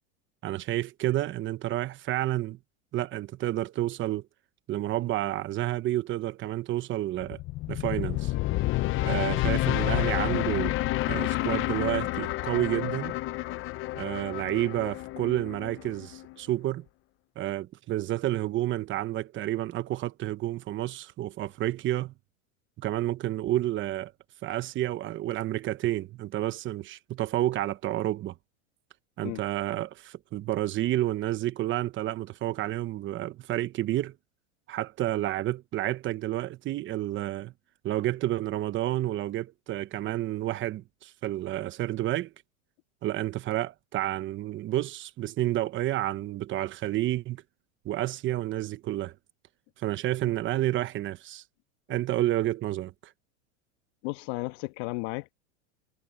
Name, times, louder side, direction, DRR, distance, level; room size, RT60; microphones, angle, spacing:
voice 1, 0.4-2.6 2.9-4.2 4.7-7.4 7.7-8.3 9.0-10.7 11.1-13.2 13.9-16.8 17.4-22.1 22.8-24.1 24.4-28.3 29.2-34.1 34.7-37.5 37.8-42.3 43.0-47.4 47.8-49.1 49.8-51.4 51.9-53.1, right 14 dB, 30° right, 1.1 m, -30 dB
sound 1, 7.2-16.3, left 17 dB, 30° left, 0.8 m, -29 dB
voice 2, 54.0-55.4, left 24 dB, 55° left, 1.8 m, -34 dB
supercardioid pair, 130°, 41 cm